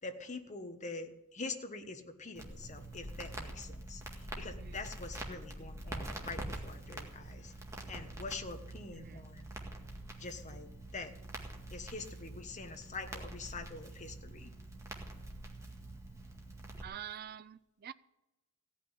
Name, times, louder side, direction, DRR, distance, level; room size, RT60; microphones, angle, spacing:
voice 1, 0.0-7.6 7.9-9.5 10.2-11.2 11.7-14.5, left 3 dB, 35° left, 1.1 m, -45 dB
Crackle, 2.3-16.8, right 1 dB, 15° right, 1.9 m, -45 dB
voice 2, 8.9-9.3 16.8-17.9, right 9 dB, 45° right, 0.4 m, -46 dB
16.0 x 5.9 x 9.9 m
head